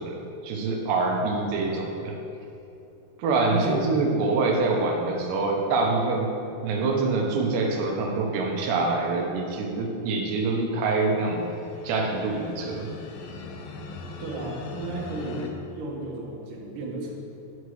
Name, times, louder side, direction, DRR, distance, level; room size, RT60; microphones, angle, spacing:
voice 1, 0.0-2.2 3.2-6.4 6.6-11.5 11.8-12.9, right 3 dB, 85° right, 1 dB, 3.2 m, -25 dB
voice 2, 3.5-3.8 14.2-17.1, right 2 dB, 65° right, -2 dB, 2.7 m, -34 dB
sound 1, 11.0-15.5, left 3 dB, 75° left, 2.2 m, -41 dB
9.6 x 7.2 x 4.8 m, 2.8 s
omnidirectional pair, 4.7 m